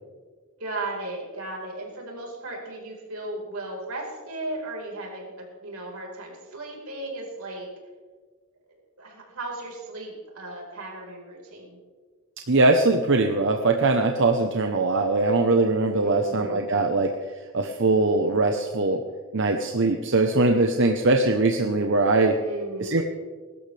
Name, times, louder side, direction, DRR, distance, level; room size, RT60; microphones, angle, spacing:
voice 1, 0.6-7.7 9.0-11.8 15.9-16.7 22.3-23.0, right 2 dB, 85° right, -1 dB, 4.5 m, -36 dB
voice 2, 12.5-17.1 17.5-19.0 19.3-22.4 22.8-23.0, right 2 dB, 60° right, 4 dB, 0.9 m, -21 dB
22.0 x 12.5 x 3.4 m, 1.5 s
head